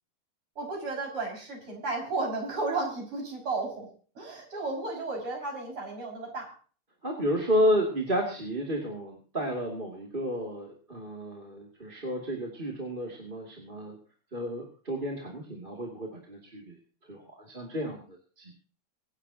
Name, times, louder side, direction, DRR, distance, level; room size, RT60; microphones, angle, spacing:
voice 1, 0.6-3.9 4.1-6.5, right 3 dB, 90° right, 1 dB, 7.0 m, -33 dB
voice 2, 7.0-14.0 14.3-16.8 17.1-18.0 18.4-18.5, equal, 25° right, 0 dB, 2.7 m, -31 dB
23.5 x 11.5 x 2.9 m, 0.40 s
omnidirectional pair, 2.4 m